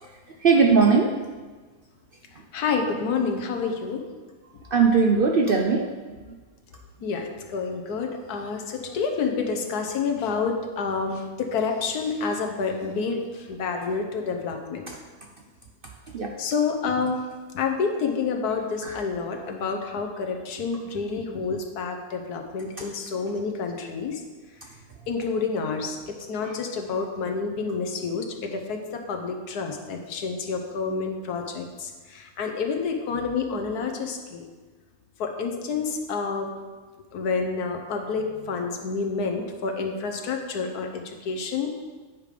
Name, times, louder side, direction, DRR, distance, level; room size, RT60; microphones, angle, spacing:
voice 1, 0.4-1.1 4.7-5.9 14.9-15.0 16.1-16.3 18.8-19.0 26.4-26.5, right 5 dB, 65° right, 2 dB, 0.5 m, -19 dB
voice 2, 2.5-4.0 7.0-14.8 16.4-17.2 17.5-24.2 25.1-26.0 26.3-34.5 35.2-36.5 37.1-41.7, left 5 dB, 85° left, 3 dB, 1.5 m, -28 dB
9.0 x 5.0 x 5.1 m, 1.4 s
omnidirectional pair, 1.6 m